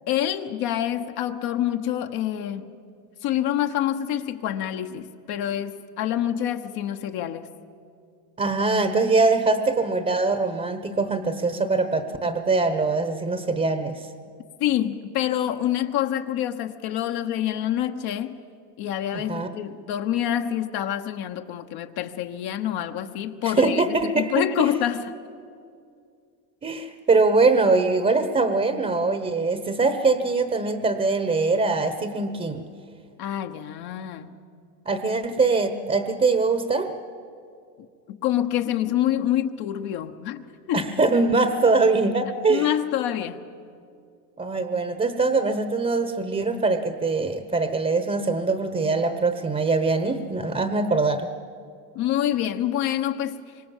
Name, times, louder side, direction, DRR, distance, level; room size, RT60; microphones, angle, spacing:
voice 1, 0.1-2.7 3.2-7.5 14.6-18.4 18.8-25.0 33.2-34.3 38.1-40.8 42.5-43.4 51.9-53.4, left 11 dB, 50° left, 5 dB, 1.3 m, -26 dB
voice 2, 8.4-14.1 19.1-19.5 23.4-24.7 26.6-32.6 34.8-36.9 40.7-42.7 44.4-51.3, right 3 dB, 15° right, 9 dB, 1.2 m, -23 dB
25.5 x 25.0 x 7.4 m, 2.3 s
supercardioid pair, 125°, 48 cm